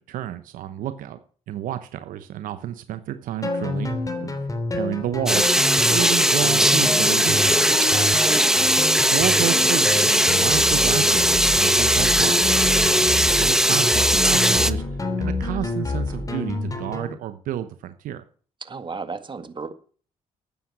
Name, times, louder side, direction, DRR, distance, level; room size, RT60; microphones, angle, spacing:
voice 1, 0.1-1.2 1.5-4.5 4.7-7.7 9.1-12.6 13.0-14.8 15.2-18.2, right 12 dB, 75° right, 1.0 m, -31 dB
sound 1, 3.4-17.1, left 2 dB, 25° left, 2.9 m, -28 dB
sound 2, 5.3-14.7, right 1 dB, 5° right, 1.0 m, -19 dB
voice 2, 7.9-8.6 18.7-19.7, right 4 dB, 35° right, 1.9 m, -34 dB
12.5 x 9.2 x 6.2 m
supercardioid pair, 70°, 14 cm